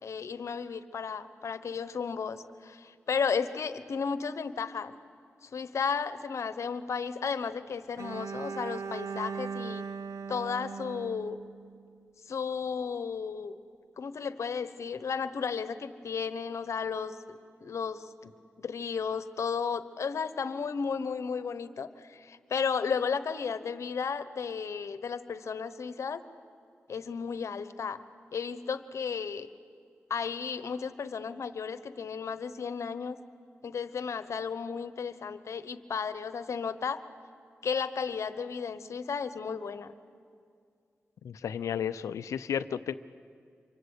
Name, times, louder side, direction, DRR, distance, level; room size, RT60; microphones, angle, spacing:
voice 1, 0.0-4.9 5.4-9.8 10.3-11.4 12.3-13.6 14.0-18.3 18.6-26.2 26.9-28.0 28.3-29.5 30.1-33.2 33.6-37.0 37.6-39.9, left 6 dB, 75° left, 12 dB, 1.1 m, -34 dB
Bowed string instrument, 8.0-12.0, right 5 dB, 75° right, 0.9 m, -39 dB
voice 2, 41.2-42.9, left 8 dB, 90° left, 14 dB, 0.6 m, -33 dB
26.5 x 24.0 x 8.3 m, 2.3 s
cardioid pair, 45°, 5 cm